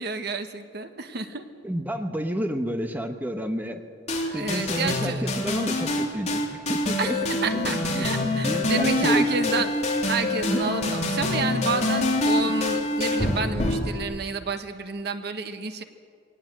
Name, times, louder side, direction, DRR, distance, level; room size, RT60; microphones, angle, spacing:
voice 1, 0.0-1.5 4.2-5.3 7.0-15.8, right 4 dB, 60° right, 8 dB, 1.2 m, -30 dB
voice 2, 1.6-3.8 4.3-7.2 7.5-8.1 8.4-9.7 10.5-10.6 12.3-12.5, equal, 10° right, 5 dB, 1.1 m, -30 dB
sound 1, 4.1-14.0, left 1 dB, 35° left, 3.0 m, -25 dB
22.0 x 18.5 x 7.6 m, 2.1 s
head